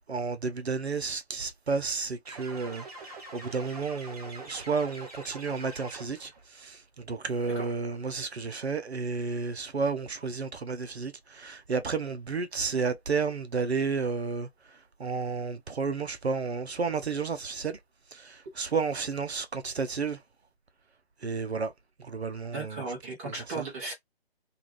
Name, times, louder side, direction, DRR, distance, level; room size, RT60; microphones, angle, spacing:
voice 1, 0.0-14.5 15.0-17.8 18.1-20.2 21.2-21.7 22.0-22.9 23.2-23.6, right 4 dB, 80° right, 0.7 m, -32 dB
sound 1, 2.2-6.4, right 3 dB, 35° right, 1.3 m, -44 dB
voice 2, 22.5-23.9, right 3 dB, 15° right, 0.9 m, -36 dB
2.5 x 2.3 x 3.0 m
figure-of-eight pair, 145°, 32 cm